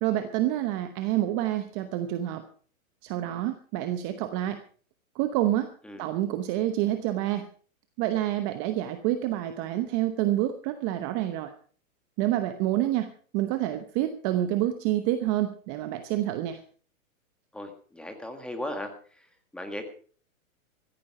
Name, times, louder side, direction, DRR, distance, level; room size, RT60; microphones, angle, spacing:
voice 1, 0.0-2.4 3.0-4.6 5.1-5.7 6.0-7.5 8.0-11.5 12.2-13.1 13.3-16.6, right 13 dB, 25° right, 9 dB, 0.9 m, -28 dB
voice 2, 17.5-19.3 19.5-19.8, left 1 dB, ahead, 5 dB, 1.7 m, -37 dB
15.0 x 14.5 x 4.8 m, 0.43 s
hypercardioid pair, 155°, 42 cm